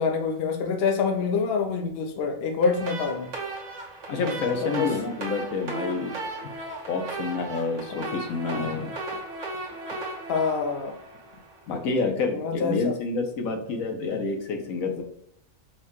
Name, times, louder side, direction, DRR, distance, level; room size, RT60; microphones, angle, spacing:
voice 1, 0.0-3.3 4.1-4.3 4.6-4.9 10.3-10.9 12.3-12.9, left 5 dB, 55° left, 3 dB, 0.8 m, -26 dB
sound 1, 2.6-11.7, right 2 dB, 65° right, 1.2 m, -36 dB
voice 2, 4.1-6.2 6.9-8.9 11.7-15.0, left 4 dB, 85° left, 3 dB, 1.1 m, -28 dB
4.5 x 2.2 x 2.9 m, 0.73 s
omnidirectional pair, 1.4 m